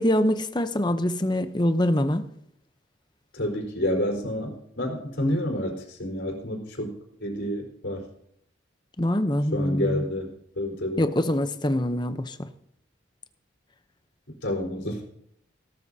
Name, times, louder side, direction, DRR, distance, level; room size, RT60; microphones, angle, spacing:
voice 1, 0.0-2.3 9.0-10.0 11.0-12.5, left 1 dB, 20° left, 0.8 m, -24 dB
voice 2, 3.3-6.9 7.2-8.1 9.5-11.1 14.4-15.0, left 1 dB, 70° left, 4.4 m, -29 dB
18.0 x 13.0 x 2.8 m
head